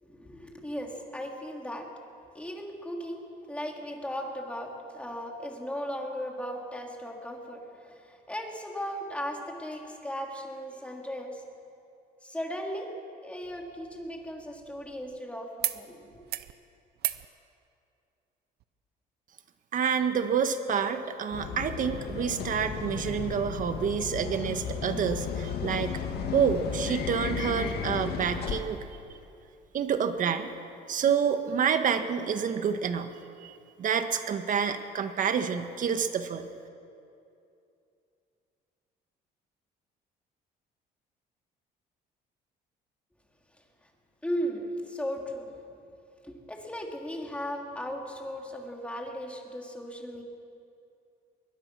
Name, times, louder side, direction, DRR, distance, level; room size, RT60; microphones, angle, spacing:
voice 1, 0.0-1.9 2.3-11.4 12.2-16.3 44.2-45.6 46.2-50.2, equal, 5° left, 1 dB, 3.3 m, -37 dB
sound 1, 13.4-15.2 15.6-15.8 16.1-16.5 17.0-17.3 18.6-18.7, right 14 dB, 70° right, 0.8 m, -36 dB
voice 2, 19.7-26.0 26.3-28.8 29.7-30.5 30.9-33.1 33.4-36.5, right 7 dB, 50° right, 8 dB, 1.6 m, -28 dB
sound 2, 21.3-28.6, left 7 dB, 70° left, 2.0 m, -34 dB
22.0 x 21.0 x 6.3 m, 2.6 s
cardioid pair, 110°, 17 cm